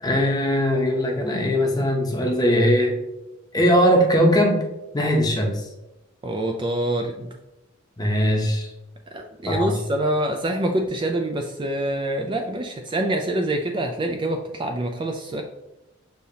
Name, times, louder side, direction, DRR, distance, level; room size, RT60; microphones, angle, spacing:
voice 1, 0.0-3.0 3.5-4.6 4.9-5.6 8.0-8.7 9.5-9.8, equal, 20° left, 1 dB, 0.7 m, -20 dB
voice 2, 6.2-7.3 9.1-15.4, right 1 dB, 25° right, 3 dB, 0.3 m, -25 dB
6.5 x 2.8 x 2.7 m, 0.93 s
head